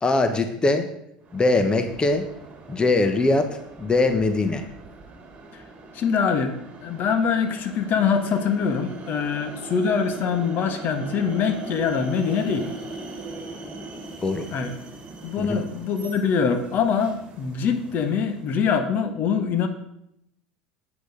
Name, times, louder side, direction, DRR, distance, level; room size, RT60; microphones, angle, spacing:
voice 1, 0.0-0.9 1.3-2.3 2.7-4.7 14.2-14.5 15.4-15.6, left 2 dB, 20° left, 7 dB, 1.2 m, -22 dB
sound 1, 1.2-18.7, right 3 dB, 30° right, 2.6 m, -40 dB
voice 2, 5.9-6.5 6.8-12.7 14.5-14.7 15.2-19.7, left 6 dB, 45° left, 8 dB, 1.3 m, -24 dB
8.5 x 8.0 x 5.2 m, 0.78 s
hypercardioid pair, 80°, 4 cm